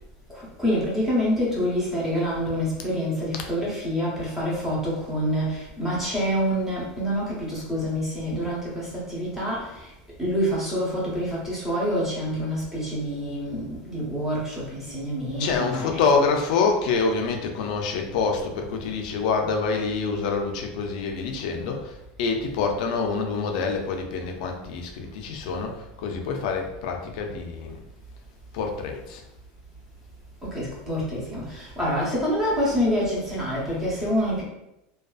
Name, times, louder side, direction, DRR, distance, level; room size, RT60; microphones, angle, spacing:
voice 1, 0.3-9.9 10.2-16.0 30.5-34.4, equal, 5° right, -6 dB, 0.7 m, -27 dB
voice 2, 15.4-27.8 28.5-29.2, left 4 dB, 55° left, 3 dB, 0.4 m, -26 dB
2.5 x 2.2 x 2.3 m, 0.88 s
supercardioid pair, 175°, 5 cm